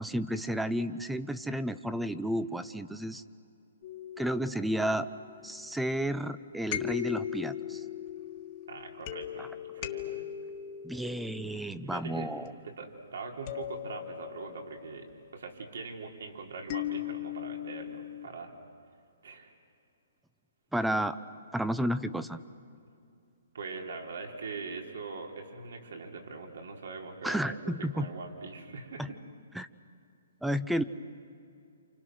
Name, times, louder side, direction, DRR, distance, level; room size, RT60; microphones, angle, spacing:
voice 1, 0.0-3.2 4.2-5.1 5.4-7.8 9.4-9.5 10.8-12.5 20.7-21.2 21.5-22.4 27.2-28.1 29.0-29.1 29.5-29.7 30.4-30.8, equal, ahead, 12 dB, 0.7 m, -32 dB
sound 1, 3.8-5.8 6.7-12.5 13.5-14.8 16.7-18.3, left 12 dB, 35° left, 1.6 m, -39 dB
voice 2, 8.7-10.2 11.5-12.3 12.6-15.1 15.3-18.5 19.2-19.5 23.5-29.2, right 4 dB, 75° right, 1 dB, 4.0 m, -42 dB
29.0 x 28.0 x 6.4 m, 2.5 s
hypercardioid pair, 155°, 0 cm